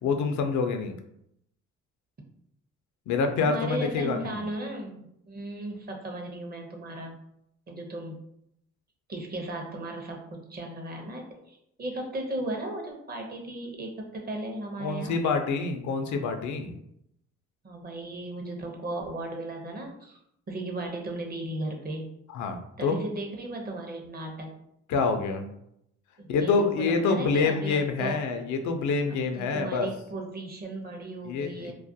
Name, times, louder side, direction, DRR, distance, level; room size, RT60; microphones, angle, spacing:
voice 1, 0.0-0.9 3.1-4.4 14.8-16.8 22.3-23.0 24.9-25.5 26.3-29.9 31.2-31.7, left 4 dB, 70° left, 6 dB, 0.4 m, -27 dB
voice 2, 3.4-7.2 7.7-8.2 9.1-15.3 17.6-20.2 20.5-22.1 22.8-24.5 26.2-28.2 29.4-31.7, right 1 dB, 30° right, 1 dB, 0.6 m, -36 dB
2.3 x 2.1 x 2.6 m, 0.77 s
cardioid pair, 90°, 30 cm